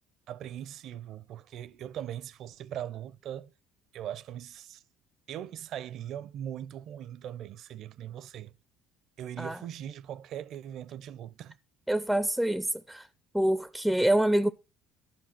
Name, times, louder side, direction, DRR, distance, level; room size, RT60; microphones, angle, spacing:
voice 1, 0.3-3.5 3.9-4.8 5.3-8.5 9.2-11.6, right 10 dB, 60° right, 0.5 m, -40 dB
voice 2, 11.9-13.1 13.3-14.5, right 1 dB, ahead, 0.4 m, -26 dB
12.0 x 4.6 x 5.8 m
cardioid pair, 125°, 0 cm